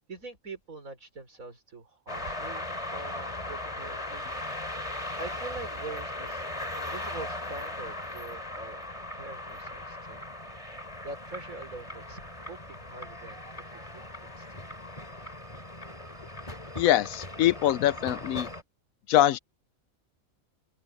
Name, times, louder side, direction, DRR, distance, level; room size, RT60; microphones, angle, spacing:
voice 1, 0.1-4.3 5.2-6.5 6.8-8.8 9.2-10.2 10.7-10.8 11.0-13.7 13.9-14.8, right 3 dB, 75° right, 4.5 m, -44 dB
sound 1, 2.1-18.6, left 1 dB, 25° left, 3.9 m, -38 dB
voice 2, 16.8-18.5 19.1-19.4, left 13 dB, 80° left, 1.0 m, -23 dB
open air
omnidirectional pair, 1.5 m